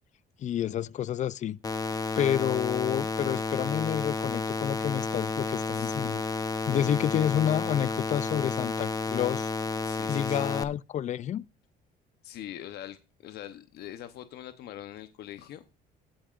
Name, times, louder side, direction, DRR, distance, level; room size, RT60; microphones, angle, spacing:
voice 1, 0.4-1.6 2.2-6.2 6.7-9.5 10.1-11.5, left 10 dB, 45° left, 0.5 m, -29 dB
sound 1, 1.6-10.6, left 3 dB, 20° left, 0.9 m, -31 dB
voice 2, 5.7-6.2 9.8-10.5 12.2-15.6, left 12 dB, 75° left, 0.9 m, -43 dB
16.0 x 8.8 x 2.5 m
cardioid pair, 110°, 17 cm